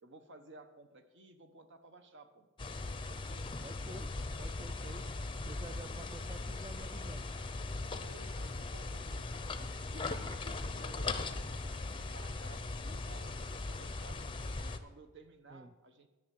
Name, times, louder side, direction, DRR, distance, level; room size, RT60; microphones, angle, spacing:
voice 1, 0.0-2.5 3.1-3.5 7.9-11.5 11.9-14.2 14.6-16.1, right 2 dB, 55° right, 7 dB, 1.1 m, -55 dB
sound 1, 2.6-14.8, left 3 dB, 25° left, 0.6 m, -39 dB
voice 2, 3.6-5.0 5.5-7.3 15.5-15.7, right 2 dB, 20° right, 8 dB, 0.4 m, -50 dB
11.5 x 6.6 x 7.6 m, 1.2 s
head